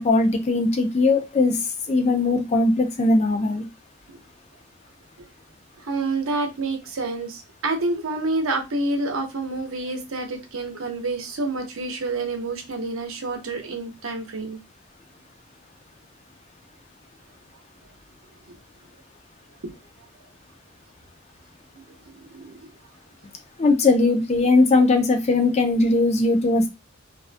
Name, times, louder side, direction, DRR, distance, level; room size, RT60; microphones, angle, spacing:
voice 1, 0.0-1.6 1.9-3.6 23.6-26.7, left 3 dB, 30° left, 5 dB, 0.4 m, -19 dB
voice 2, 5.8-14.6 22.1-22.7, right 2 dB, 70° right, 4 dB, 0.7 m, -28 dB
2.4 x 2.2 x 2.4 m, 0.24 s
head